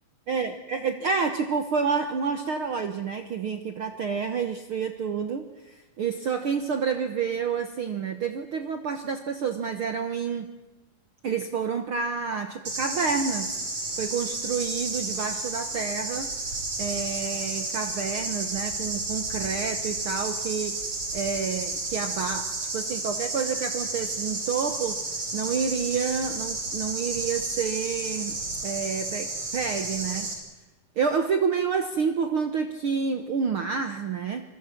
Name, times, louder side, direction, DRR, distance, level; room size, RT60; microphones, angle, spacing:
voice 1, 0.3-10.5 11.2-13.5 14.0-16.3 16.8-20.8 21.1-25.0 25.3-28.3 28.6-30.3 31.0-34.4, right 6 dB, 80° right, 7 dB, 1.1 m, -29 dB
sound 1, 12.6-30.3, right 2 dB, 35° right, 5.3 m, -32 dB
27.0 x 22.5 x 6.0 m, 1.1 s
omnidirectional pair, 4.3 m